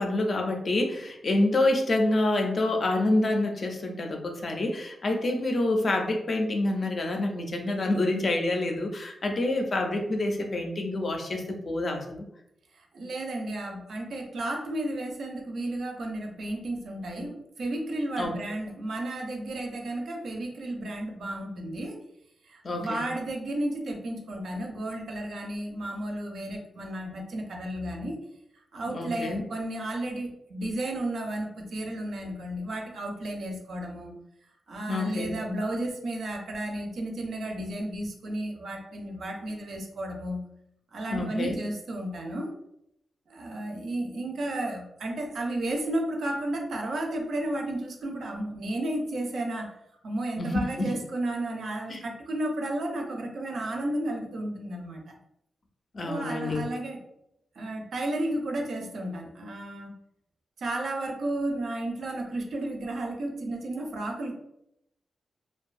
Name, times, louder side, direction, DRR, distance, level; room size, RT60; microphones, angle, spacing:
voice 1, 0.0-12.2 18.2-18.3 22.6-23.1 28.9-29.4 34.9-35.4 41.1-41.5 50.4-50.9 51.9-52.0 55.9-56.6, left 2 dB, 40° left, 3 dB, 0.4 m, -27 dB
voice 2, 12.7-22.0 22.4-28.2 28.7-34.1 34.7-40.5 40.9-42.5 43.3-49.7 50.0-55.2 56.0-57.0 57.6-59.9 60.6-64.3, right 1 dB, 65° right, 2 dB, 0.4 m, -33 dB
2.5 x 2.2 x 2.4 m, 0.79 s
wide cardioid pair, 140°, 0 cm